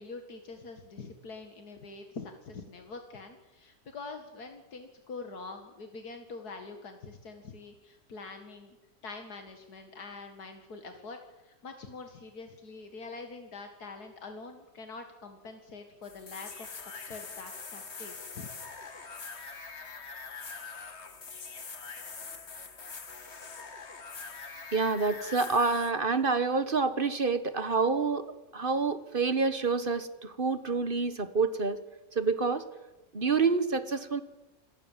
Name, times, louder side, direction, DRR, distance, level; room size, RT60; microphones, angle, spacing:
voice 1, 0.0-8.8 9.0-11.2 11.4-18.5, left 3 dB, 85° left, 5 dB, 2.5 m, -45 dB
sound 1, 16.0-25.9, left 4 dB, 45° left, 1.9 m, -43 dB
voice 2, 24.7-31.8 32.1-32.6 33.1-34.2, right 4 dB, 35° right, 12 dB, 1.5 m, -28 dB
28.0 x 20.5 x 7.5 m, 1.0 s
omnidirectional pair, 1.6 m